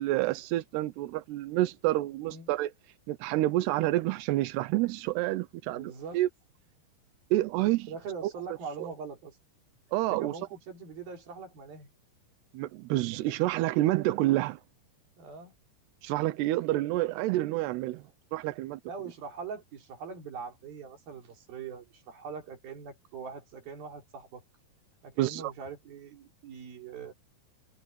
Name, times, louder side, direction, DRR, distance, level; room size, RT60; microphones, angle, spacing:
voice 1, 0.0-2.7 3.1-6.3 7.3-7.9 8.2-8.3 8.8-8.9 9.9-10.3 12.5-14.6 16.0-18.0 18.3-18.8 25.2-25.5, right 16 dB, 75° right, 2.5 m, -28 dB
voice 2, 5.7-6.2 7.9-9.4 10.1-11.9 15.2-15.5 18.9-24.4 25.0-27.1, right 6 dB, 50° right, 5.3 m, -42 dB
omnidirectional pair, 5.5 m